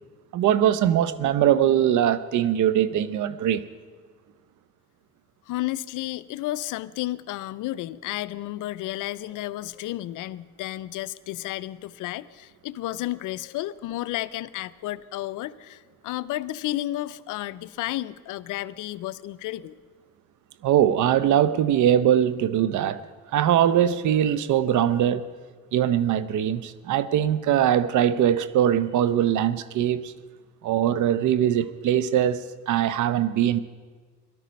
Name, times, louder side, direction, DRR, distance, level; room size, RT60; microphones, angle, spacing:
voice 1, 0.3-3.7 20.6-23.0 23.3-25.2 25.7-30.1 30.6-33.6, right 10 dB, 75° right, 15 dB, 0.8 m, -21 dB
voice 2, 5.5-19.8, left 15 dB, 85° left, 16 dB, 0.5 m, -32 dB
18.0 x 12.5 x 5.2 m, 1.5 s
cardioid pair, 90°, 30 cm